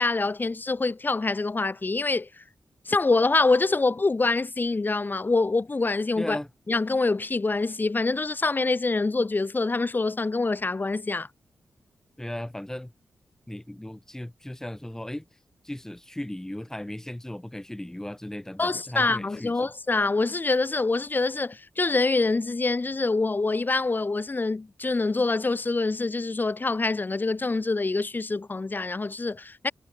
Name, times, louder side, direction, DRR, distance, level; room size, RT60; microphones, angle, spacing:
voice 1, 0.0-2.4 2.9-6.4 6.7-11.3 18.6-29.7, left 3 dB, 35° left, 3.2 m, -25 dB
voice 2, 6.2-6.5 12.2-12.9 13.5-15.4 15.6-19.5, left 1 dB, 10° left, 2.4 m, -36 dB
cardioid pair, 60°, 5 cm